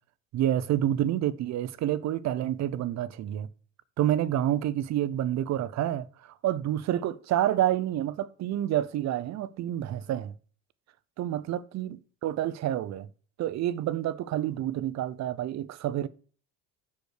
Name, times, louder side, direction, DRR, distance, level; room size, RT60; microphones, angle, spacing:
voice 1, 0.3-3.5 4.0-10.3 11.2-13.1 13.4-16.1, right 12 dB, 50° right, 0.7 m, -28 dB
6.3 x 5.3 x 6.5 m
supercardioid pair, 85°, 35 cm